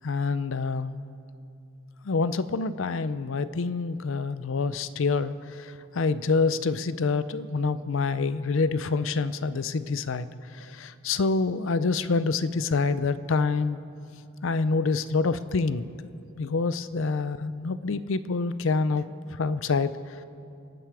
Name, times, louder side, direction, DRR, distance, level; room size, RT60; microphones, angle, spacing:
voice 1, 0.0-1.0 2.0-10.3 10.5-13.8 14.4-16.1 16.4-19.1 19.3-19.9, left 4 dB, 65° left, 14 dB, 0.5 m, -27 dB
25.0 x 9.3 x 4.8 m, 2.6 s
head